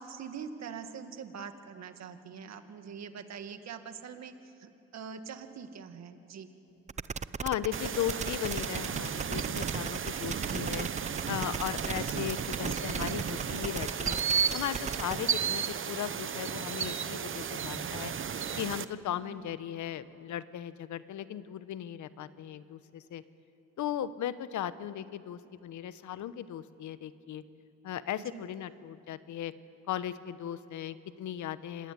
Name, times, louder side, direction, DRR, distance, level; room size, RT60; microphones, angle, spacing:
voice 1, 0.0-4.3 4.6-6.5 19.2-19.5 28.3-28.5, right 6 dB, 60° right, 8 dB, 2.1 m, -44 dB
sound 1, 6.9-15.1, right 5 dB, 25° right, 0.6 m, -37 dB
voice 2, 7.4-10.9 11.3-14.2 14.5-18.1 18.6-23.2 23.8-27.4 27.8-29.5 29.9-31.9, left 10 dB, 70° left, 14 dB, 1.1 m, -37 dB
sound 2, 7.7-18.8, right 7 dB, 45° right, 1.0 m, -34 dB
26.0 x 19.0 x 9.7 m, 2.8 s
cardioid pair, 90°, 30 cm